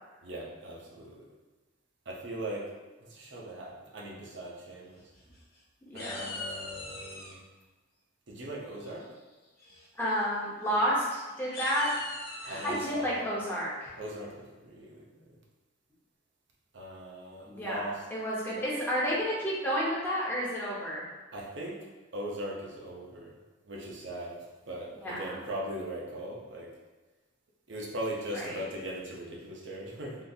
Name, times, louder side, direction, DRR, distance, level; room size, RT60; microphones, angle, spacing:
voice 1, 0.2-1.2 2.1-2.7 3.1-5.0 5.9-7.4 8.3-9.1 12.4-13.4 14.0-15.3 16.7-18.0 21.3-21.8 22.1-23.3 23.7-24.4 24.7-26.7 27.7-30.2, right 1 dB, 55° right, -2 dB, 0.7 m, -39 dB
sound 1, 5.0-5.6 6.0-7.3 8.8-9.2 9.6-9.8 10.1-10.2 10.6-10.8 11.4-13.0, left 2 dB, 45° left, 0.7 m, -41 dB
voice 2, 5.9-6.2 9.9-11.9 12.4-13.9 17.5-21.0 25.0-25.4 28.3-28.6, equal, 10° left, -7 dB, 0.7 m, -31 dB
3.7 x 2.5 x 2.7 m, 1.2 s
head